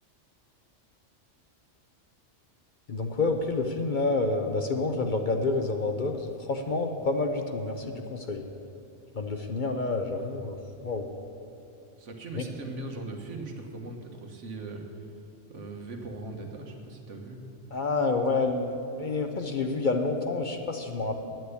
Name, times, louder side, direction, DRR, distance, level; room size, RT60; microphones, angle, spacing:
voice 1, 2.9-8.4 9.2-11.1 12.4-12.5 17.7-21.2, left 3 dB, 45° left, 5 dB, 0.8 m, -28 dB
voice 2, 12.0-15.1 15.5-17.4, right 2 dB, 75° right, 3 dB, 1.6 m, -39 dB
9.2 x 8.6 x 9.7 m, 2.8 s
omnidirectional pair, 1.3 m